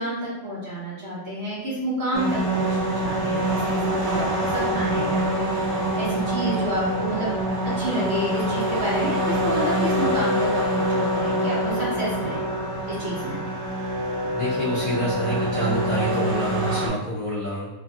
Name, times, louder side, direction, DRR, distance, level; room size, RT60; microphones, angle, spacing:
voice 1, 0.0-5.5 5.9-7.3 7.6-12.4 12.9-13.4, equal, 50° right, -7 dB, 0.8 m, -29 dB
sound 1, 2.1-16.9, right 1 dB, 85° right, 0.6 m, -25 dB
voice 2, 14.3-17.7, right 1 dB, 85° left, -9 dB, 0.4 m, -27 dB
3.0 x 2.6 x 2.3 m, 0.99 s
omnidirectional pair, 1.8 m